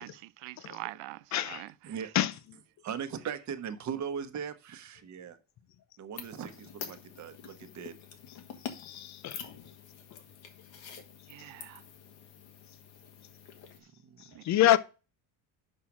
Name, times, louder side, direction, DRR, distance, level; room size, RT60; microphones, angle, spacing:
voice 1, 0.0-1.7 11.3-11.8 14.3-14.4, right 19 dB, 80° right, 0.6 m, -44 dB
voice 2, 1.3-1.6 2.1-2.3 8.7-9.4 14.4-14.8, left 13 dB, 40° left, 0.6 m, -26 dB
voice 3, 2.8-5.4 6.0-7.9 14.0-14.4, right 7 dB, 40° right, 1.1 m, -39 dB
sound 1, 6.2-13.8, left 8 dB, 90° left, 1.9 m, -47 dB
6.4 x 5.7 x 6.0 m
cardioid pair, 155°, 44 cm